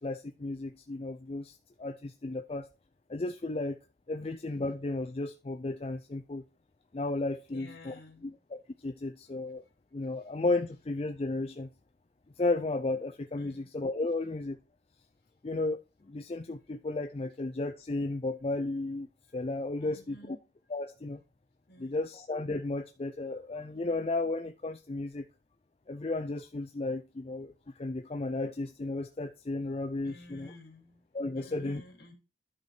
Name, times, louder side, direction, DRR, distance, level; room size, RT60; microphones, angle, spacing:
voice 1, 0.0-2.7 3.1-3.8 4.1-6.4 6.9-7.9 8.2-9.6 9.9-11.7 12.4-14.6 15.4-19.1 19.3-20.4 20.7-21.2 21.8-25.2 25.9-30.5 31.1-31.8, left 2 dB, 35° left, 0.4 m, -34 dB
voice 2, 7.5-8.3 13.4-13.7 19.8-20.4 21.7-22.0 30.0-31.0 31.3-32.1, left 1 dB, 55° left, 2.8 m, -52 dB
11.0 x 4.3 x 4.8 m
head